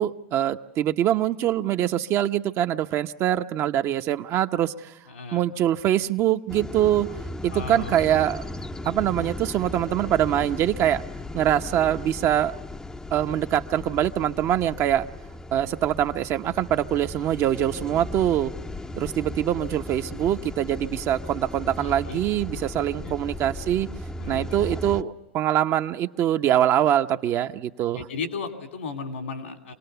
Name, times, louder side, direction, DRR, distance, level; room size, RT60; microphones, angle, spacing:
voice 1, 0.0-4.9 5.3-7.1 7.4-8.4 8.8-11.0 11.3-12.5 13.1-15.1 15.5-18.5 19.0-23.9 24.3-28.0, right 11 dB, 45° right, 8 dB, 0.9 m, -24 dB
voice 2, 5.1-5.5 7.5-8.0 21.8-22.2 23.0-23.1 24.2-24.5 27.9-29.7, left 4 dB, 85° left, 5 dB, 3.0 m, -35 dB
sound 1, 6.5-25.0, left 1 dB, 10° left, 0.7 m, -36 dB
26.0 x 18.5 x 6.9 m, 1.1 s
hypercardioid pair, 100°, 7 cm